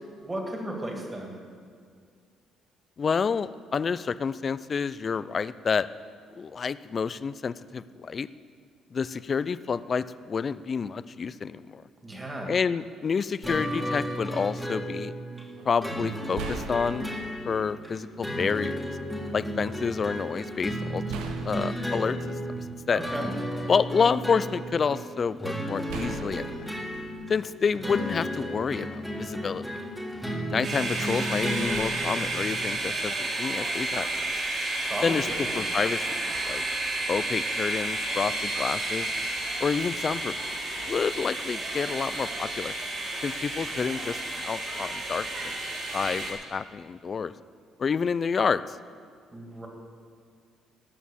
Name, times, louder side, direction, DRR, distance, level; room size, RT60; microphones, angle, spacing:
voice 1, 0.2-1.3 12.0-12.5 22.9-23.3 34.8-35.7 49.3-49.7, right 1 dB, 15° right, 1 dB, 2.4 m, -35 dB
voice 2, 3.0-5.9 6.4-8.3 8.9-11.8 12.5-15.1 15.7-17.1 17.5-18.8 19.3-21.0 21.4-22.2 22.5-23.0 23.7-26.4 27.3-28.9 29.2-29.7 30.5-34.2 35.0-35.3 35.5-36.6 37.1-39.1 39.6-40.3 40.9-42.7 43.2-45.5 45.9-47.3 47.8-48.8, left 6 dB, 35° left, 16 dB, 0.4 m, -28 dB
sound 1, 13.4-32.6, equal, ahead, 1.8 m, -34 dB
sound 2, 15.6-15.7 16.3-17.6 18.6-18.7 21.1-23.3 23.8-24.7 25.9-28.0, right 5 dB, 90° right, 1.1 m, -40 dB
sound 3, 30.6-46.3, right 2 dB, 55° right, 3.9 m, -31 dB
18.5 x 6.4 x 7.2 m, 2.1 s
cardioid pair, 125°, 0 cm